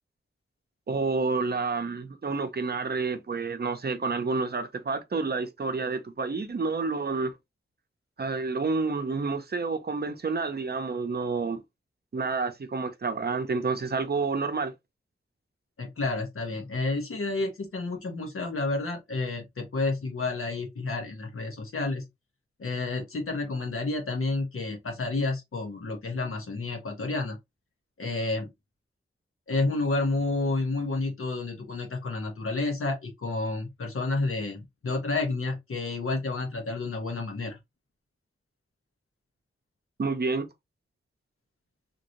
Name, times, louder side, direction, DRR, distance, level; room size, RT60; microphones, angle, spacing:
voice 1, 0.9-7.3 8.2-11.6 12.1-14.7 40.0-40.5, right 4 dB, 50° right, 0.6 m, -29 dB
voice 2, 15.8-22.0 22.6-27.4 28.0-28.5 29.5-37.6, left 3 dB, 90° left, 1.1 m, -30 dB
2.9 x 2.6 x 2.9 m
wide cardioid pair, 70°, 21 cm